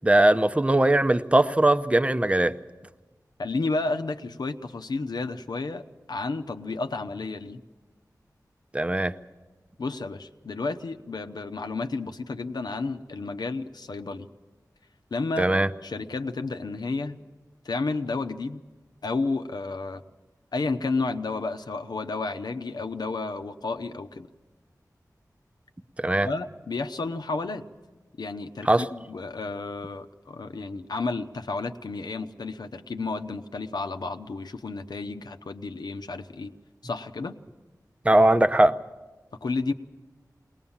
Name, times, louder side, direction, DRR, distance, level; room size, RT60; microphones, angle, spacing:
voice 1, 0.0-2.5 8.7-9.1 15.4-15.7 26.0-26.3 28.6-28.9 38.0-38.8, right 1 dB, 20° right, 12 dB, 0.6 m, -20 dB
voice 2, 3.4-7.6 9.8-14.3 15.1-15.5 15.8-17.2 17.6-18.6 19.0-20.0 20.5-24.3 26.2-27.6 28.2-36.5 36.8-37.4 39.4-39.7, left 3 dB, 90° left, 8 dB, 0.8 m, -31 dB
21.5 x 19.5 x 7.2 m, 1.2 s
wide cardioid pair, 70°, 7 cm